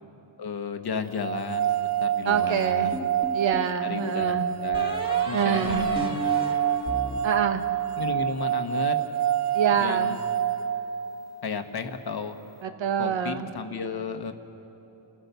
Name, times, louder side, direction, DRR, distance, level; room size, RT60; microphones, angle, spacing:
voice 1, 0.4-3.1 3.8-4.3 4.6-6.3 8.0-9.0 9.7-10.3 11.4-12.4 13.0-14.3, left 5 dB, 55° left, 7 dB, 1.3 m, -33 dB
sound 1, 1.2-11.3, right 10 dB, 40° right, 0.5 m, -27 dB
voice 2, 2.2-3.0 3.3-4.5 5.3-5.9 7.2-7.7 9.5-10.1 12.6-13.5, right 7 dB, 75° right, 7 dB, 1.4 m, -26 dB
sound 2, 2.9-3.8 4.7-8.1, equal, 10° right, 2.2 m, -35 dB
29.5 x 15.0 x 6.9 m, 3.0 s
wide cardioid pair, 130°, 46 cm